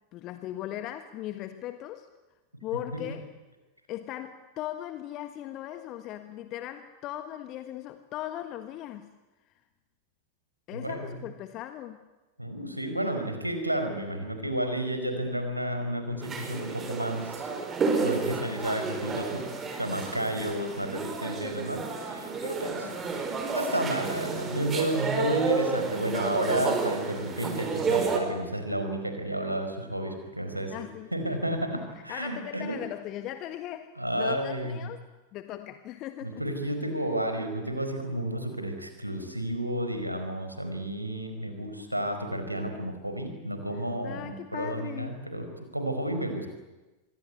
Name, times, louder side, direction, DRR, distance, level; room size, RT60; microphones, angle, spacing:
voice 1, 0.1-2.1 2.6-3.3 3.9-9.1 10.7-12.0 22.8-23.0 30.7-31.1 31.7-35.0 35.3-36.4 44.0-45.3, left 13 dB, 35° left, 9 dB, 1.6 m, -38 dB
voice 2, 10.7-11.2 12.4-17.4 18.0-19.4 19.8-22.9 23.5-30.7 31.1-32.8 34.0-34.8 36.2-45.5 45.7-46.5, right 1 dB, 85° right, 6 dB, 4.8 m, -31 dB
sound 1, 16.2-28.2, right 4 dB, 20° right, 4.9 m, -31 dB
26.0 x 22.5 x 9.6 m, 1.1 s
figure-of-eight pair, 90°, 0 cm